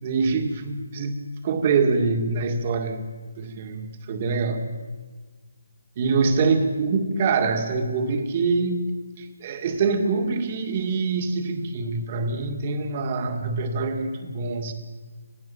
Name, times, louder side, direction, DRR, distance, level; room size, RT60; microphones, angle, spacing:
voice 1, 0.0-4.8 6.0-8.9 9.2-14.7, right 4 dB, 25° right, 6 dB, 2.1 m, -25 dB
26.5 x 17.0 x 7.2 m, 1.4 s
hypercardioid pair, 170°, 0 cm